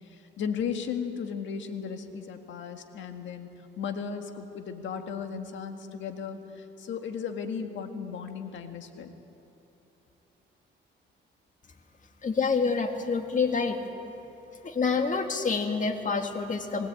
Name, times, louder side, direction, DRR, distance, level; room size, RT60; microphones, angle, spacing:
voice 1, 0.1-3.5 3.8-9.1, left 6 dB, 70° left, 5 dB, 1.9 m, -35 dB
voice 2, 12.2-13.8 14.6-16.9, left 4 dB, 40° left, 5 dB, 2.1 m, -27 dB
21.0 x 17.0 x 8.8 m, 2.9 s
cardioid pair, 90°, 20 cm